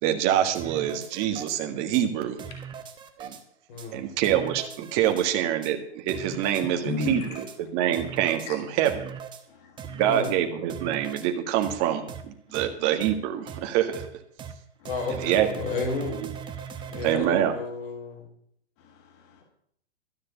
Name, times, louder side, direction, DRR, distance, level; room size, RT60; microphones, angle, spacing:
voice 1, 0.0-2.4 3.2-3.4 3.9-9.1 9.9-14.0 15.2-15.5 17.0-17.5, right 11 dB, 30° right, 5 dB, 1.7 m, -25 dB
sound 1, 0.5-1.6 1.9-2.0 2.4-3.4 3.8-3.9 4.2-5.3 5.6-5.7 6.1-6.6 7.0-7.6 7.9-8.5 8.8-9.4 9.8-10.3 10.7-11.3 11.6-11.8 12.1-12.2 12.5-12.7 13.0-13.1 13.5-13.6 13.9-14.1 14.4-14.5 14.8-17.2, right 7 dB, 15° right, 0.9 m, -39 dB
voice 2, 3.7-4.1 10.0-10.4 14.8-16.2 16.9-18.3, left 4 dB, 50° left, 0 dB, 4.9 m, -32 dB
voice 3, 6.8-7.4 8.4-8.6 9.5-10.0 16.7-17.0 18.8-19.4, left 4 dB, 35° left, 5 dB, 1.5 m, -35 dB
13.0 x 6.4 x 8.3 m, 0.67 s
hypercardioid pair, 140°, 34 cm